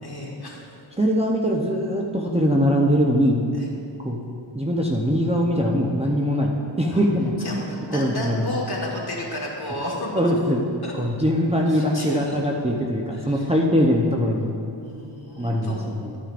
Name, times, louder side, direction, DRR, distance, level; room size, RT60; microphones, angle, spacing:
voice 1, 0.0-0.6 3.5-3.7 6.9-7.0 7.4-10.2 10.8-10.9 11.7-12.4 13.1-13.5 14.8-16.0, left 1 dB, 50° left, -3 dB, 1.9 m, -32 dB
voice 2, 1.0-3.4 4.0-4.2 4.5-6.5 6.8-7.5 7.9-8.5 10.2-10.6 10.9-14.5 15.4-16.2, equal, 15° right, -2 dB, 0.7 m, -22 dB
13.0 x 9.1 x 2.5 m, 2.6 s
wide cardioid pair, 85°, 48 cm